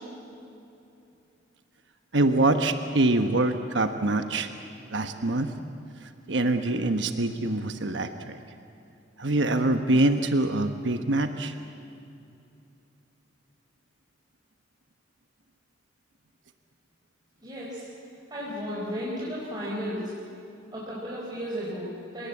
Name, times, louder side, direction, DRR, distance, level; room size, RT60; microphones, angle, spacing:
voice 1, 2.1-4.5 4.9-5.5 6.3-8.4 9.2-11.5, right 2 dB, 70° right, 7 dB, 1.1 m, -24 dB
voice 2, 17.4-17.8 18.3-20.1 20.7-22.3, equal, 25° right, -7 dB, 4.7 m, -34 dB
29.0 x 18.5 x 8.6 m, 2.7 s
head